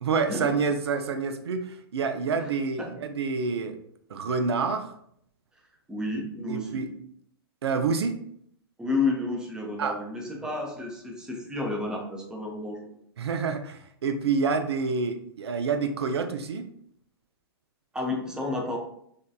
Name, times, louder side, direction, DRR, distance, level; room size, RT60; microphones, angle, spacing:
voice 1, 0.0-3.8 4.1-4.9 6.5-6.9 7.6-8.2 9.8-10.0 10.4-10.5 13.2-16.7, right 5 dB, 85° right, 7 dB, 0.4 m, -28 dB
voice 2, 5.9-6.8 8.8-12.8 17.9-18.8, left 3 dB, 5° right, -1 dB, 0.4 m, -31 dB
2.7 x 2.2 x 2.2 m, 0.69 s
hypercardioid pair, 125°, 13 cm